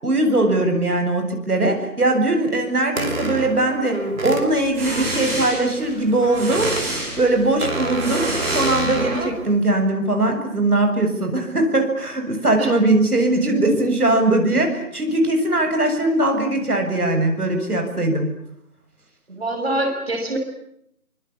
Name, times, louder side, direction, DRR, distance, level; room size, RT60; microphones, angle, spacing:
voice 1, 0.0-6.7 7.2-18.3, right 2 dB, 90° right, 4 dB, 7.2 m, -20 dB
sound 1, 3.0-4.5 6.2-6.8 7.6-9.4, right 2 dB, 60° right, 5.9 m, -27 dB
sound 2, 4.5-9.3, right 1 dB, 10° right, 7.7 m, -29 dB
voice 2, 19.3-20.4, right 1 dB, 45° right, 3 dB, 6.1 m, -24 dB
25.5 x 25.0 x 8.5 m, 0.73 s
figure-of-eight pair, 175°, 44 cm